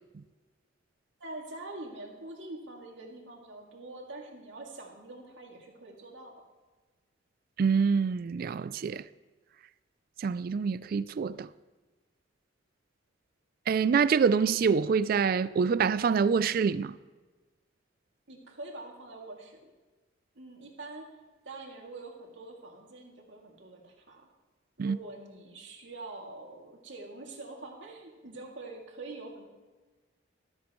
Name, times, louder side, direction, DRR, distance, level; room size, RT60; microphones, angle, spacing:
voice 1, 1.2-6.3 18.3-19.7 20.3-21.1 21.4-24.3 24.8-29.5, right 2 dB, 70° right, 2.5 m, -45 dB
voice 2, 7.6-9.0 10.2-11.5 13.7-17.0 24.8-25.0, right 6 dB, 50° right, 0.3 m, -26 dB
14.0 x 13.5 x 3.1 m
head